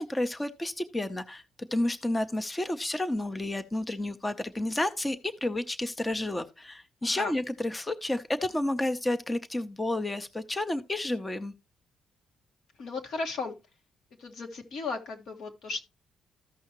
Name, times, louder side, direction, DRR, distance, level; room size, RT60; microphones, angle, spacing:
voice 1, 0.0-11.5, left 1 dB, 15° left, 0.6 m, -31 dB
voice 2, 7.0-7.3 12.8-13.5 14.2-15.8, left 4 dB, 70° left, 1.7 m, -35 dB
14.0 x 5.5 x 3.0 m
cardioid pair, 90°, 0 cm